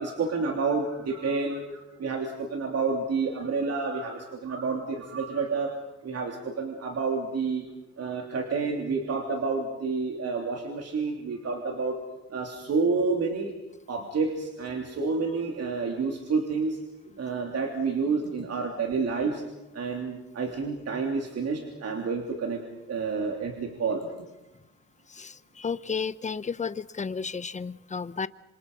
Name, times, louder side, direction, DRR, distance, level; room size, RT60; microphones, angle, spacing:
voice 1, 0.0-5.7 6.0-7.6 8.0-12.0 12.3-13.5 13.9-16.8 17.2-19.4 19.7-22.6 22.9-24.0, right 4 dB, 55° right, 2 dB, 3.3 m, -29 dB
voice 2, 25.1-28.3, left 5 dB, 25° left, 16 dB, 0.8 m, -33 dB
27.5 x 25.0 x 5.5 m, 1.0 s
cardioid pair, 90°, 30 cm